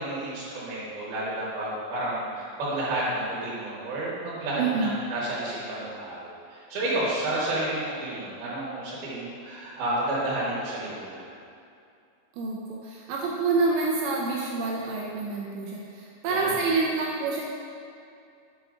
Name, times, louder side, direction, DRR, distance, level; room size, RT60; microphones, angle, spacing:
voice 1, 0.0-11.3 16.3-16.5, right 1 dB, 65° right, -8 dB, 2.7 m, -31 dB
voice 2, 4.6-5.0 12.4-17.4, right 3 dB, 80° right, -3 dB, 2.7 m, -27 dB
7.5 x 5.7 x 3.6 m, 2.4 s
omnidirectional pair, 5.5 m